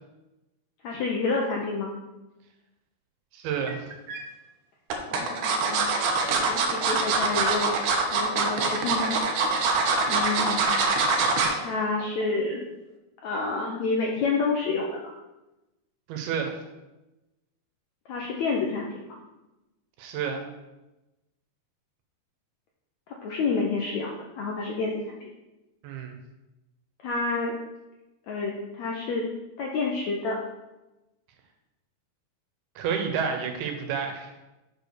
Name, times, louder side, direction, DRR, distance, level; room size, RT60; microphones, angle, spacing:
voice 1, 0.8-1.9 5.1-7.8 8.1-9.2 9.8-10.7 11.6-12.6 13.2-15.1 18.1-19.2 23.1-25.2 27.0-27.5 28.3-29.3 29.6-30.4, left 4 dB, 75° left, -1 dB, 1.6 m, -29 dB
voice 2, 3.3-3.9 16.1-16.5 20.0-20.4 25.8-26.2 32.8-34.3, right 6 dB, 85° right, 5 dB, 3.0 m, -30 dB
sound 1, 3.7-4.2 4.9-11.6 12.0-12.2 12.5-12.6, right 4 dB, 70° right, 2.2 m, -24 dB
7.1 x 5.3 x 6.6 m, 1.0 s
omnidirectional pair, 4.4 m